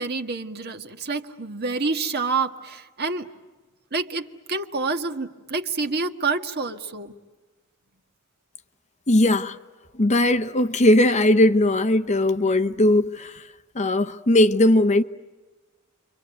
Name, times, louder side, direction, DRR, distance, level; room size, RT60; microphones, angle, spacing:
voice 1, 0.0-3.3 3.9-7.1, right 4 dB, 50° right, 1.7 m, -28 dB
voice 2, 9.1-9.6 9.9-13.4 13.7-15.0, left 1 dB, 35° left, 0.9 m, -19 dB
29.5 x 24.5 x 8.1 m
head